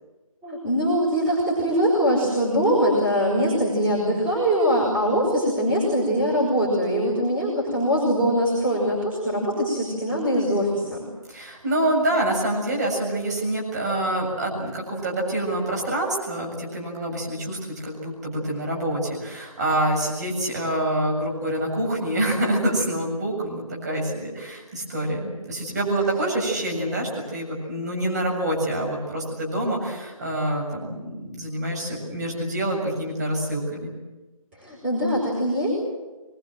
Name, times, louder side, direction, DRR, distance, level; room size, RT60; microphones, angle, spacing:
voice 1, 0.4-11.1 34.6-35.8, equal, 5° right, -9 dB, 5.2 m, -22 dB
voice 2, 11.3-33.9, right 1 dB, 30° right, -1 dB, 7.3 m, -26 dB
25.5 x 22.5 x 7.8 m, 1.1 s
figure-of-eight pair, 165°, 18 cm